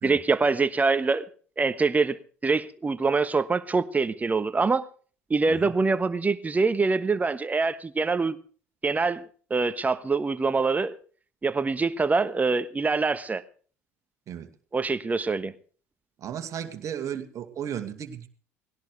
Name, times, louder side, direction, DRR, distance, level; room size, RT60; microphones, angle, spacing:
voice 1, 0.0-1.3 1.6-2.2 2.4-4.8 5.3-8.4 8.8-10.9 11.4-13.4 14.7-15.5, right 4 dB, 20° right, 1.3 m, -24 dB
voice 2, 16.2-18.3, right 9 dB, 45° right, 2.2 m, -35 dB
20.0 x 17.0 x 3.3 m
figure-of-eight pair, 60°, 8 cm